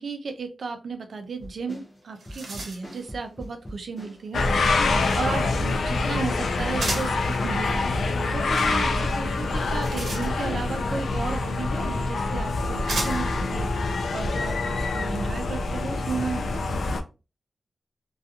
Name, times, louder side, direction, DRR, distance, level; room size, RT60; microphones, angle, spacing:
voice 1, 0.0-4.4 4.9-16.6, right 4 dB, 65° right, 7 dB, 0.5 m, -34 dB
sound 1, 1.4-4.3 4.5-8.8 9.1-10.4, equal, 15° left, 0.6 m, -42 dB
sound 2, 1.7-1.8 2.0-3.0 6.8-7.2 9.5-10.7 11.8-11.9 12.9-13.4, right 2 dB, 80° right, 0.8 m, -33 dB
sound 3, 4.3-17.0, left 3 dB, 80° left, 0.4 m, -26 dB
2.7 x 2.3 x 2.4 m, 0.30 s
wide cardioid pair, 145°, 0 cm